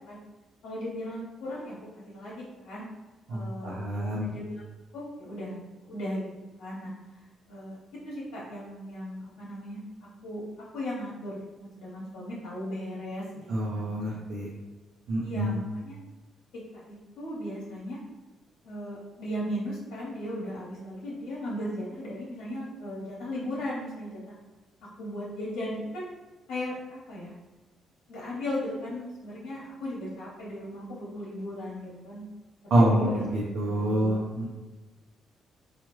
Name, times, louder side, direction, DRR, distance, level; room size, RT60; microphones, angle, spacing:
voice 1, 0.6-2.8 3.3-4.4 4.9-6.3 6.6-6.9 7.5-9.8 10.2-13.9 15.2-16.0 16.7-18.0 18.6-24.3 25.0-26.1 26.5-27.3 28.1-32.3 32.8-33.2 33.6-34.1, left 1 dB, 85° left, -7 dB, 0.9 m, -37 dB
voice 2, 3.3-4.3 13.5-14.5 15.1-15.6 32.7-34.4, right 1 dB, 70° right, -6 dB, 0.7 m, -26 dB
3.1 x 2.4 x 3.0 m, 1.2 s
cardioid pair, 90°, 0 cm